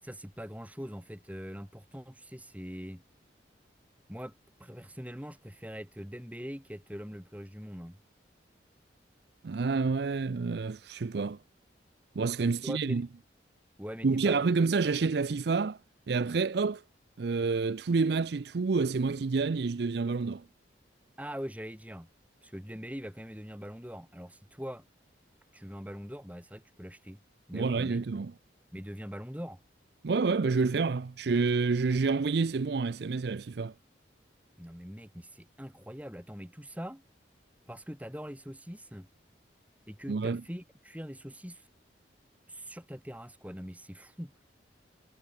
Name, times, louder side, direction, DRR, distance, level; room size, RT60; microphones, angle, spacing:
voice 1, 0.0-3.0 4.1-8.0 12.6-13.0 13.8-14.4 21.2-22.1 22.4-24.8 25.5-27.2 27.5-28.0 28.7-29.6 34.6-37.0 37.7-39.1 39.9-41.7 42.5-44.3, equal, 10° right, 7.0 m, -42 dB
voice 2, 9.4-11.4 12.2-13.1 14.0-15.8 16.1-16.8 17.2-20.4 27.5-28.3 30.0-33.7 40.1-40.4, right 4 dB, 60° right, 0.5 m, -28 dB
head